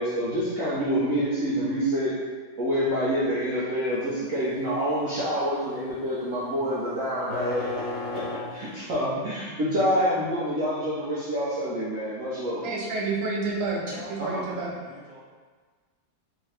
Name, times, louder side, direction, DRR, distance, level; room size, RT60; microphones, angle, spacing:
voice 1, 0.0-2.2 2.6-7.7 8.1-8.2 8.5-12.7 14.2-14.4, equal, 65° right, -10 dB, 0.8 m, -27 dB
sound 1, 6.1-9.0, left 3 dB, 70° left, 1.6 m, -35 dB
voice 2, 12.6-14.7, right 3 dB, 80° right, -2 dB, 1.4 m, -29 dB
voice 3, 13.9-15.2, right 1 dB, 35° left, -13 dB, 0.7 m, -42 dB
3.6 x 2.7 x 3.2 m, 1.5 s
omnidirectional pair, 2.1 m